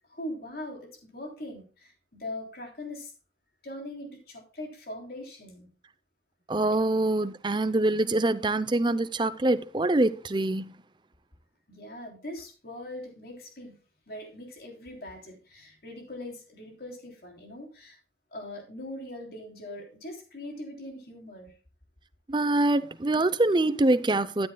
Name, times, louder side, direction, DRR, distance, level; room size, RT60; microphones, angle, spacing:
voice 1, 0.1-3.1 3.6-5.7 6.7-6.8 7.7-7.8 11.7-13.7 14.1-18.0 18.3-21.5, left 1 dB, 55° left, 3.3 m, -41 dB
voice 2, 6.5-10.7 22.3-24.5, right 2 dB, 25° right, 0.6 m, -25 dB
13.5 x 9.9 x 2.3 m
head